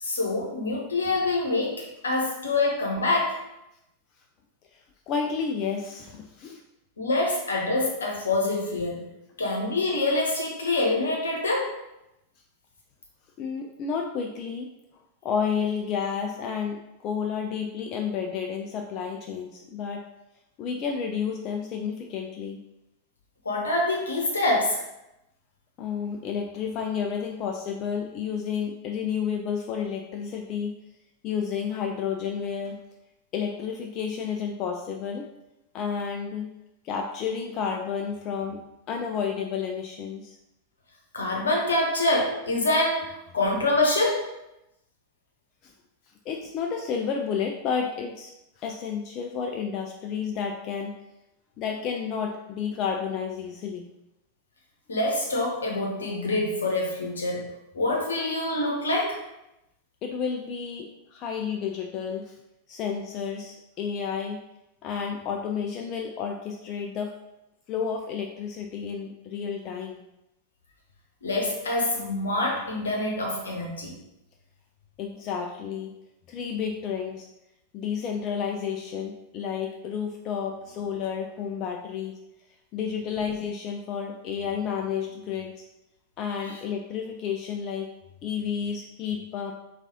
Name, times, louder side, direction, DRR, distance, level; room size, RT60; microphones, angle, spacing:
voice 1, 0.0-3.4 7.0-9.1 9.4-11.7 23.4-24.8 41.1-44.2 54.9-57.5 57.7-59.2 71.2-73.9 86.4-86.6, left 2 dB, 70° left, -1 dB, 0.8 m, -26 dB
voice 2, 5.1-6.6 13.4-14.7 15.2-20.0 20.6-22.6 25.8-30.8 31.2-32.8 33.3-35.2 35.7-36.5 36.8-38.6 38.9-40.4 45.6-45.7 46.3-48.3 48.6-50.9 51.6-53.9 60.0-62.4 62.7-64.4 64.8-67.1 67.7-70.0 75.0-75.9 76.3-77.3 77.7-82.2 82.7-85.6 86.2-87.9 88.2-89.5, left 7 dB, 35° left, 3 dB, 0.3 m, -31 dB
4.5 x 2.4 x 2.8 m, 0.90 s
figure-of-eight pair, 90°, 0 cm